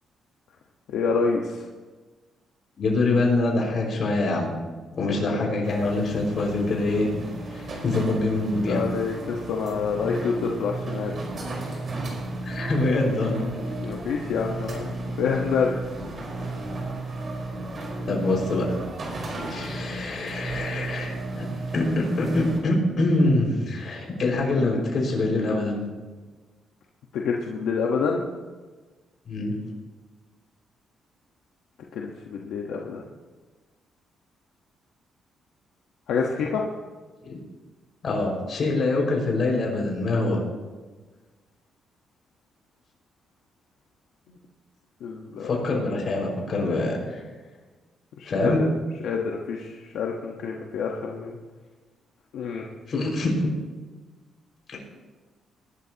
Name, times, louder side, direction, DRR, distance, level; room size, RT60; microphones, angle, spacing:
voice 1, 0.9-1.7 4.9-5.4 8.6-11.1 13.8-15.8 24.5-24.8 27.1-28.2 31.9-33.0 36.1-36.6 45.0-45.5 48.2-48.7 49.0-51.4 52.3-52.6, left 5 dB, 85° left, 0 dB, 1.2 m, -27 dB
voice 2, 2.8-4.6 5.0-7.1 7.5-8.9 12.5-13.5 18.1-18.7 19.5-21.5 21.7-25.8 29.3-29.5 37.3-37.4 38.0-40.4 45.4-47.2 48.2-48.6 52.9-53.5 54.7-54.8, left 2 dB, 50° left, -1 dB, 5.3 m, -24 dB
sound 1, 5.6-22.6, right 2 dB, 45° right, 4.5 m, -34 dB
21.5 x 12.5 x 2.9 m, 1.3 s
cardioid pair, 100°, 0 cm